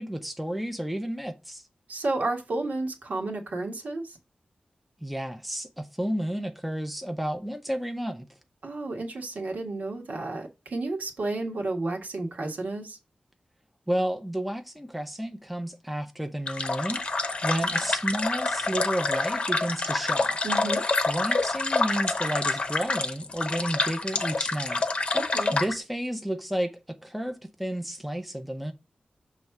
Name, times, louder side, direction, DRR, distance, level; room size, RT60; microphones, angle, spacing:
voice 1, 0.0-1.7 5.0-8.3 13.9-17.0 17.4-20.4 21.1-24.9 25.5-28.7, right 1 dB, ahead, 0.6 m, -31 dB
voice 2, 1.9-4.2 8.6-13.0 20.4-20.8 25.1-25.5, right 2 dB, 70° right, 1.5 m, -31 dB
sound 1, 16.5-25.7, left 3 dB, 45° left, 0.8 m, -27 dB
6.8 x 3.2 x 5.8 m
wide cardioid pair, 135°, 3 cm